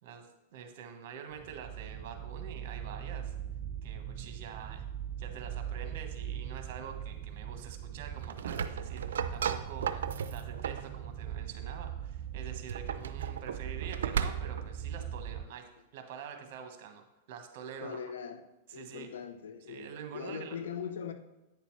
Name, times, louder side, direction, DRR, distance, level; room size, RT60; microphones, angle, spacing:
voice 1, 0.0-3.3 3.8-4.8 5.2-18.0 18.7-19.1 19.7-20.6, right 7 dB, 60° right, 6 dB, 1.2 m, -46 dB
sound 1, 1.3-15.4, right 9 dB, 35° right, 0.5 m, -40 dB
sound 2, 8.1-10.9 12.5-14.7, right 7 dB, 90° right, 0.4 m, -35 dB
voice 2, 17.8-18.4 18.7-21.1, left 7 dB, 85° left, 9 dB, 0.8 m, -41 dB
9.0 x 6.8 x 3.2 m, 1.0 s
hypercardioid pair, 135°, 0 cm